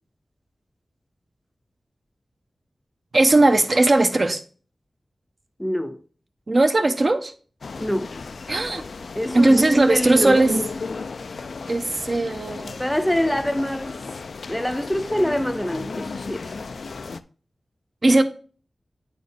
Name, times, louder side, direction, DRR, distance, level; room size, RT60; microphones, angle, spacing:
voice 1, 3.1-4.4 6.5-7.3 8.5-8.8 9.3-10.6 11.7-12.8 18.0-18.2, right 2 dB, 50° right, 0.7 m, -18 dB
voice 2, 5.6-6.0 7.8-8.1 9.2-10.4 12.8-14.0 14.5-16.5, equal, 5° left, 0.4 m, -25 dB
sound 1, 7.6-17.2, left 4 dB, 80° left, 0.3 m, -35 dB
8.8 x 4.1 x 3.3 m
wide cardioid pair, 90°, 0 cm